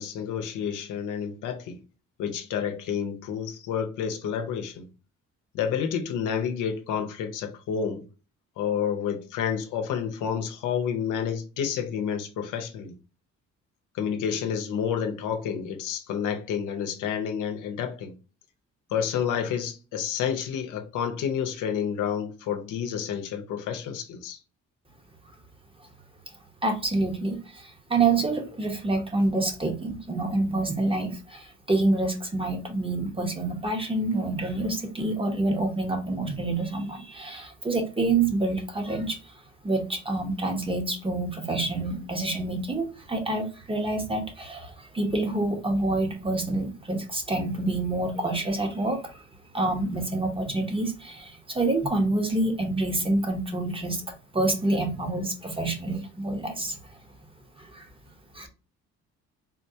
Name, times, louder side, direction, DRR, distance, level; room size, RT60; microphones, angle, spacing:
voice 1, 0.0-1.8 2.2-4.9 5.5-8.0 8.6-13.0 13.9-18.2 18.9-24.4, left 8 dB, 85° left, 0.7 m, -29 dB
voice 2, 26.6-39.2 39.6-49.1 49.5-56.8 57.6-57.8 58.3-58.5, right 2 dB, 20° right, 0.9 m, -27 dB
3.7 x 2.2 x 2.7 m
cardioid pair, 90°, 30 cm